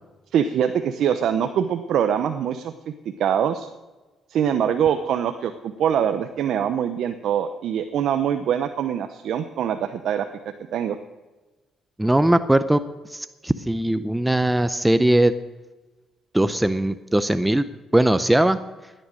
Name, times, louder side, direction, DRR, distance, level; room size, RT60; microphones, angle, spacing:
voice 1, 0.3-2.7 3.2-3.7 4.3-10.3 10.7-11.0, right 8 dB, 75° right, 8 dB, 0.8 m, -23 dB
voice 2, 12.0-12.8 13.1-15.3 16.3-17.7 17.9-18.6, right 1 dB, 10° right, 12 dB, 0.6 m, -20 dB
15.5 x 10.0 x 6.3 m, 1.2 s
cardioid pair, 90°, 0 cm